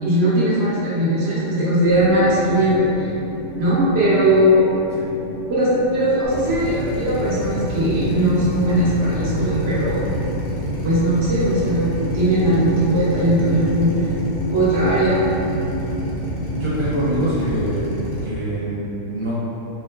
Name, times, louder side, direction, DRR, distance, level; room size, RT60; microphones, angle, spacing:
voice 1, 0.0-3.1 3.6-4.7 5.5-10.1 10.8-14.0 14.5-15.2, right 1 dB, 55° right, -10 dB, 1.3 m, -19 dB
sound 1, 1.8-17.7, left 1 dB, 75° left, 1.8 m, -32 dB
Drill, 6.2-18.2, right 1 dB, 60° left, 0.9 m, -28 dB
voice 2, 16.5-17.9 18.2-19.4, equal, 25° right, -11 dB, 0.9 m, -25 dB
4.6 x 2.1 x 2.2 m, 2.9 s
omnidirectional pair, 1.3 m